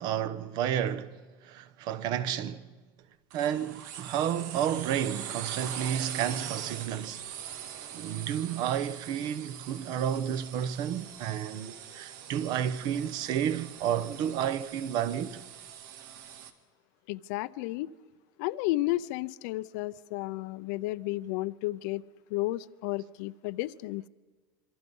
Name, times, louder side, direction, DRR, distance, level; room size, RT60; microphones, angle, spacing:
voice 1, 0.0-2.7 3.3-7.2 7.9-15.4, right 9 dB, 45° right, 1.0 m, -31 dB
sound 1, 3.3-16.5, right 9 dB, 85° right, 2.0 m, -42 dB
voice 2, 17.1-17.9 18.4-22.0 22.3-24.0, left 18 dB, 70° left, 0.7 m, -32 dB
27.0 x 24.0 x 5.5 m
cardioid pair, 180°, 10 cm